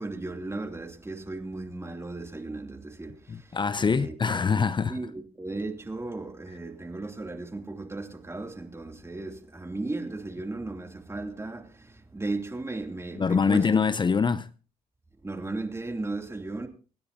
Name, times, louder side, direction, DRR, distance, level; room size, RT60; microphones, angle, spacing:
voice 1, 0.0-4.1 4.9-13.7 15.2-16.7, right 2 dB, 20° right, 2.8 m, -36 dB
voice 2, 3.3-5.0 13.2-14.5, left 5 dB, 35° left, 0.6 m, -24 dB
25.5 x 10.0 x 2.8 m
supercardioid pair, 60°, 14 cm